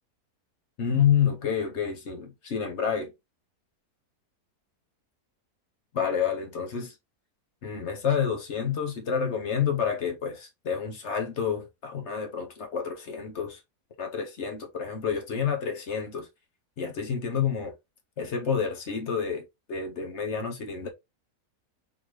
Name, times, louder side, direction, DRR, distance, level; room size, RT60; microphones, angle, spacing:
voice 1, 0.8-3.1 5.9-6.9 7.6-13.6 14.0-16.3 16.8-17.7 18.2-19.4 19.7-20.9, left 7 dB, 50° left, 1.1 m, -29 dB
3.9 x 2.8 x 3.2 m
omnidirectional pair, 1.7 m